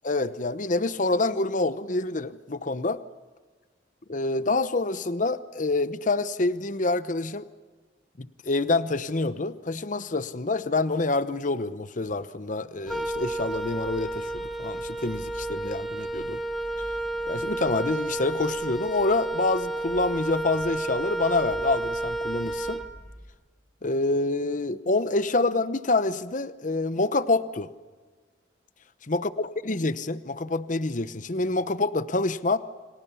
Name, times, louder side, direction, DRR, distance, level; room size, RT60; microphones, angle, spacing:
voice 1, 0.0-3.0 4.1-7.5 8.2-14.3 14.6-16.4 17.3-22.8 23.8-27.7 29.1-32.6, left 2 dB, 45° left, 14 dB, 0.9 m, -27 dB
Wind instrument woodwind instrument, 12.9-23.3, right 2 dB, ahead, 1.4 m, -31 dB
30.0 x 24.5 x 7.1 m, 1.4 s
head